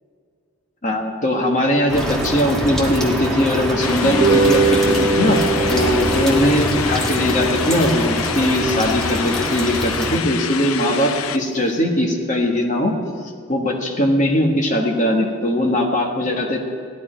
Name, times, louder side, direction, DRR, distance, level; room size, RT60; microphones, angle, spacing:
voice 1, 0.8-13.0 13.5-16.6, left 1 dB, 35° left, 1 dB, 1.4 m, -20 dB
sound 1, 1.9-10.2, equal, 5° left, 1.4 m, -25 dB
sound 2, 3.8-11.4, left 8 dB, 80° left, 0.5 m, -28 dB
sound 3, 4.0-10.5, right 3 dB, 35° right, 0.8 m, -23 dB
15.5 x 11.0 x 4.5 m, 2.2 s
head